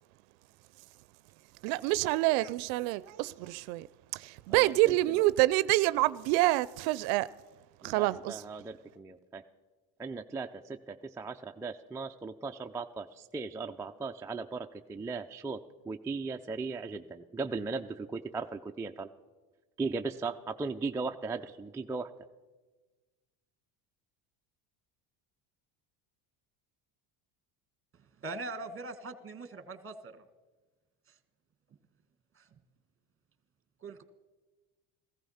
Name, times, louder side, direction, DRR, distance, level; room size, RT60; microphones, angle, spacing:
voice 1, 1.6-3.9 4.1-7.3 7.8-8.5, right 18 dB, 90° right, 0.6 m, -27 dB
voice 2, 4.5-5.0 7.8-9.4 10.0-15.6 15.9-19.1 19.8-22.1, right 4 dB, 5° right, 0.4 m, -37 dB
voice 3, 28.2-30.1 33.8-34.0, right 3 dB, 25° right, 1.4 m, -41 dB
15.5 x 14.0 x 5.6 m
supercardioid pair, 90°, 50 cm